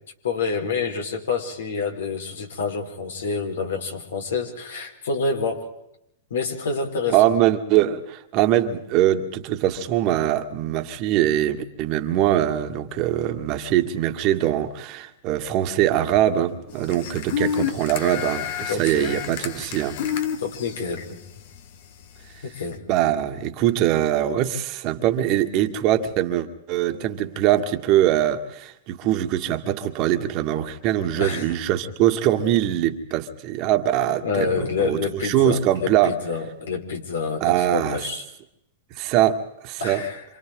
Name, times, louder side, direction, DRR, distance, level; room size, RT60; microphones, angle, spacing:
voice 1, 0.2-5.6 6.3-7.2 17.6-17.7 18.7-19.2 20.4-21.2 22.4-22.8 31.1-31.5 34.2-38.2 39.8-40.2, left 5 dB, 75° left, 4.6 m, -28 dB
voice 2, 7.1-20.0 22.9-36.2 37.4-38.1 39.0-40.1, right 12 dB, 45° right, 2.0 m, -22 dB
sound 1, 16.7-22.7, left 8 dB, 60° left, 1.7 m, -30 dB
27.5 x 27.0 x 3.9 m
hypercardioid pair, 110°, 0 cm